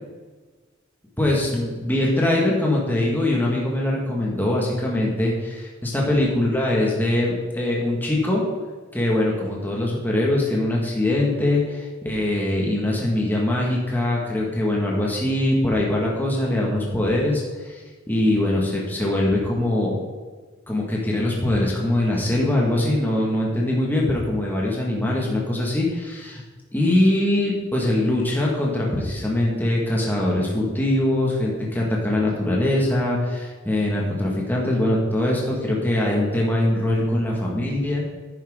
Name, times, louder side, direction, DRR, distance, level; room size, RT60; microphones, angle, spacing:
voice 1, 1.2-8.4 8.9-17.8 18.1-19.9 20.7-26.4 26.7-38.1, left 1 dB, 10° left, -3 dB, 1.8 m, -22 dB
10.5 x 10.0 x 3.8 m, 1.3 s
head